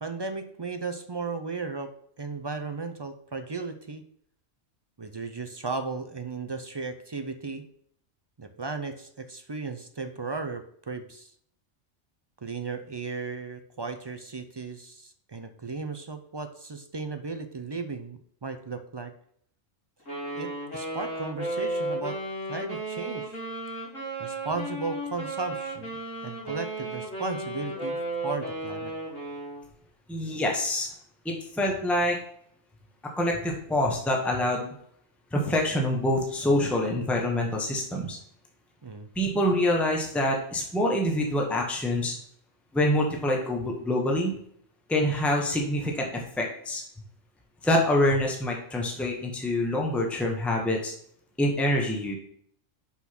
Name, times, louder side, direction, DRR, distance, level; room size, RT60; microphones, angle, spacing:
voice 1, 0.0-4.0 5.0-7.7 8.4-11.3 12.4-19.1 20.3-22.2 22.5-23.4 24.2-25.9 26.2-28.9 38.8-39.1, right 4 dB, 45° right, 7 dB, 0.3 m, -35 dB
Wind instrument woodwind instrument, 20.1-29.6, right 1 dB, 80° left, 3.6 m, -34 dB
voice 2, 30.1-30.9 31.2-32.2 33.1-34.7 35.3-38.2 39.1-42.1 42.7-44.3 44.9-46.8 47.6-50.9 51.4-52.2, left 1 dB, ahead, 0 dB, 1.2 m, -26 dB
6.0 x 5.7 x 5.9 m, 0.66 s
omnidirectional pair, 1.3 m